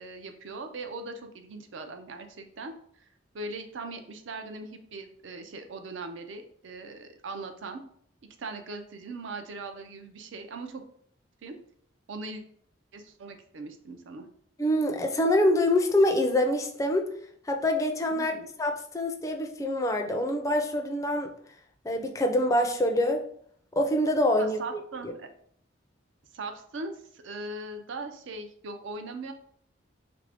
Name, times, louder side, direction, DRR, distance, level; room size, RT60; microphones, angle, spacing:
voice 1, 0.0-3.1 3.3-7.8 8.4-10.8 11.4-11.6 12.1-12.4 12.9-14.3 18.1-18.5 24.4-25.3 26.3-29.3, right 3 dB, 70° right, 6 dB, 0.5 m, -40 dB
voice 2, 14.6-17.1 17.4-18.3 18.6-21.3 21.8-23.2 23.7-25.1, left 1 dB, 15° left, 3 dB, 0.4 m, -25 dB
3.3 x 2.6 x 3.3 m, 0.63 s
head